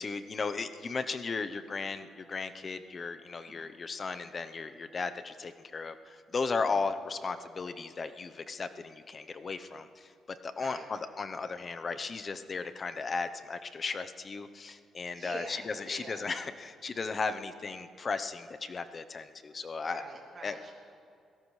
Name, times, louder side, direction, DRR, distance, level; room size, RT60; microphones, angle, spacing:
voice 1, 0.0-10.1 10.4-20.0 20.4-20.5, left 4 dB, 40° left, 10 dB, 0.7 m, -36 dB
voice 2, 10.5-10.8 15.1-16.2 19.8-20.7, right 3 dB, 45° right, -2 dB, 2.4 m, -45 dB
25.0 x 17.5 x 3.2 m, 2.5 s
cardioid pair, 90°, 0 cm